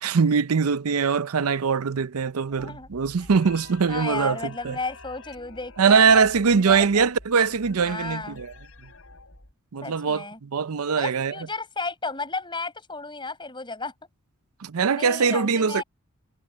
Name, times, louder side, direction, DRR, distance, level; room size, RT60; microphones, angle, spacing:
voice 1, 0.0-4.8 5.8-8.5 9.7-11.3 14.6-15.8, right 5 dB, 80° right, 0.6 m, -22 dB
sound 1, 2.5-9.5, left 3 dB, 65° left, 5.8 m, -48 dB
voice 2, 2.6-2.9 3.2-3.3 3.9-7.1 7.8-8.4 9.8-10.4 11.0-13.9 14.9-15.8, left 3 dB, 20° left, 6.3 m, -33 dB
head